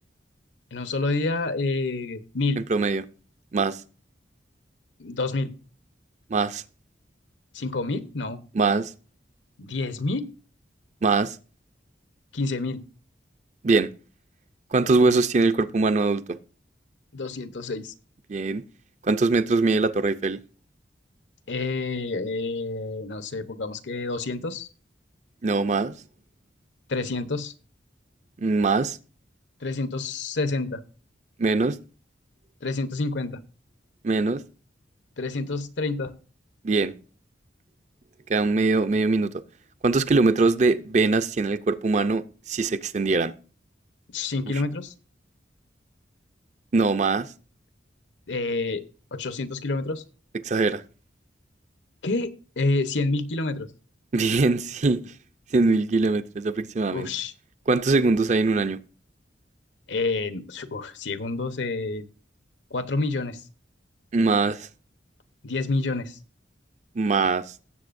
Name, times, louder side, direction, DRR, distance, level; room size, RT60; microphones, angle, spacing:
voice 1, 0.7-2.6 5.0-5.5 7.5-8.4 9.6-10.3 12.3-12.8 17.1-17.9 21.5-24.7 26.9-27.5 29.6-30.8 32.6-33.4 35.2-36.1 44.1-44.9 48.3-48.8 49.1-50.0 52.0-53.7 56.9-57.3 59.9-62.0 62.7-63.4 65.4-66.2, left 3 dB, 80° left, 0.9 m, -28 dB
voice 2, 2.7-3.0 3.5-3.8 6.3-6.6 8.5-8.9 11.0-11.4 13.6-13.9 14.7-16.2 18.3-18.6 19.1-20.4 25.4-26.0 28.4-29.0 31.4-31.8 34.0-34.4 36.6-36.9 38.3-39.3 39.8-42.2 42.5-43.3 46.7-47.3 50.4-50.8 54.1-55.1 55.5-57.1 57.7-58.8 64.1-64.7 67.0-67.4, right 3 dB, 40° right, 0.5 m, -22 dB
17.0 x 7.6 x 2.6 m
head